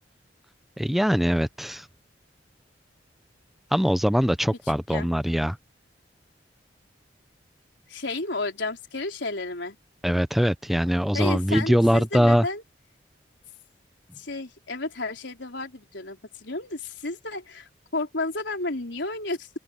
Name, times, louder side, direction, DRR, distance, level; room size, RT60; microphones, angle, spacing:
voice 1, 0.8-1.9 3.7-5.6 10.0-12.5, equal, ahead, 0.5 m, -22 dB
voice 2, 4.7-5.1 7.9-9.8 11.1-12.6 14.2-19.5, left 2 dB, 80° left, 3.8 m, -32 dB
open air
head